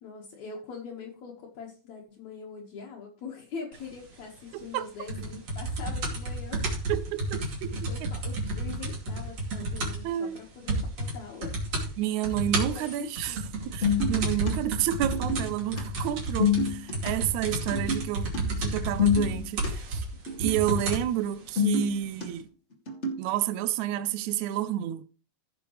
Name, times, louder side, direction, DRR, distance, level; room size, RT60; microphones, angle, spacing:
voice 1, 0.0-6.7 7.7-11.6 12.6-13.5 14.2-14.4, left 5 dB, 65° left, 2.8 m, -42 dB
voice 2, 4.5-4.9 6.9-7.7 8.0-8.1 10.0-10.5 12.0-13.4 13.7-20.1 20.4-22.5 23.2-25.1, right 12 dB, 75° right, 2.0 m, -30 dB
sound 1, 5.1-10.1 10.4-10.5 10.7-11.1 11.4-11.9 12.2-21.1 21.9-22.0, right 2 dB, 55° right, 3.7 m, -31 dB
sound 2, 13.8-14.5 15.0-15.8 16.3-17.1 17.7-18.1 18.3-18.4 18.6-19.7 20.3-21.0 21.4-22.2 22.9-23.3, left 6 dB, 25° left, 2.0 m, -27 dB
15.5 x 6.8 x 3.2 m
omnidirectional pair, 3.5 m